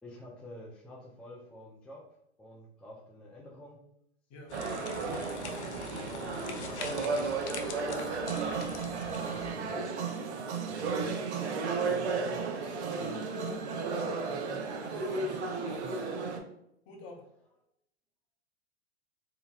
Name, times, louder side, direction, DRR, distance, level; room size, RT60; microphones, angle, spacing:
voice 1, 0.0-2.1 2.4-3.8 4.6-7.6 7.8-9.8 10.7-11.3 11.9-13.2, left 1 dB, 5° left, -4 dB, 0.4 m, -49 dB
sound 1, 4.5-9.5, left 4 dB, 85° left, 0.5 m, -43 dB
sound 2, 4.5-16.4, right 4 dB, 85° right, 0.6 m, -34 dB
voice 2, 14.3-16.0 16.9-17.2, left 2 dB, 40° left, 2 dB, 0.7 m, -49 dB
2.8 x 2.8 x 2.2 m, 0.75 s
hypercardioid pair, 110°, 33 cm